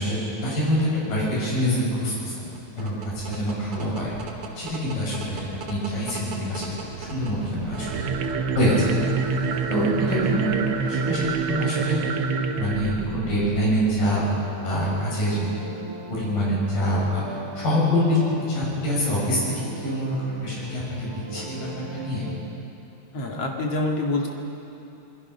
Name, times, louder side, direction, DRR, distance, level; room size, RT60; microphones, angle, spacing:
voice 1, 0.0-2.5 2.8-4.1 4.6-6.7 7.0-8.1 8.5-8.9 9.7-12.0 12.6-14.2 14.5-15.5 16.1-22.2, equal, 85° left, -5 dB, 8.5 m, -25 dB
sound 1, 2.4-13.2, right 4 dB, 60° right, 3.2 m, -40 dB
sound 2, 7.7-14.0, right 4 dB, 85° right, 1.2 m, -27 dB
sound 3, 14.7-22.6, right 1 dB, 35° right, 1.7 m, -40 dB
voice 2, 23.1-24.3, left 2 dB, 50° left, 0 dB, 3.0 m, -26 dB
27.0 x 21.5 x 5.6 m, 2.9 s
omnidirectional pair, 3.9 m